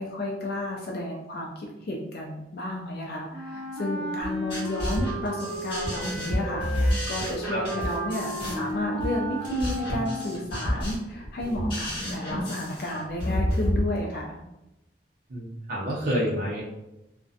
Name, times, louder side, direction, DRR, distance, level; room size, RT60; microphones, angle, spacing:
voice 1, 0.0-14.4, left 1 dB, 60° left, -1 dB, 0.4 m, -32 dB
Wind instrument woodwind instrument, 3.3-10.6, right 1 dB, 30° right, 0.8 m, -34 dB
sound 1, 4.2-13.8, equal, 30° left, 1.1 m, -30 dB
voice 2, 15.3-16.6, equal, 55° right, -5 dB, 0.5 m, -28 dB
2.6 x 2.1 x 2.4 m, 0.91 s
head